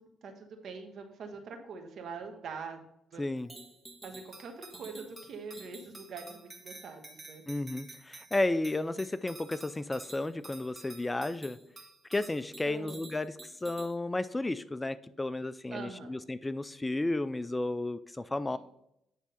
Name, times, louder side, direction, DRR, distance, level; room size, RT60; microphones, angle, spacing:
voice 1, 0.0-2.8 3.1-3.5 4.0-7.4 12.7-13.0 15.7-16.2, right 5 dB, 65° right, 5 dB, 1.3 m, -44 dB
voice 2, 3.2-3.5 7.5-11.6 12.1-18.6, left 2 dB, 15° left, 15 dB, 0.3 m, -33 dB
sound 1, 3.5-13.9, right 2 dB, 20° right, 1.4 m, -50 dB
9.5 x 3.6 x 5.6 m, 0.80 s
cardioid pair, 75°, 0 cm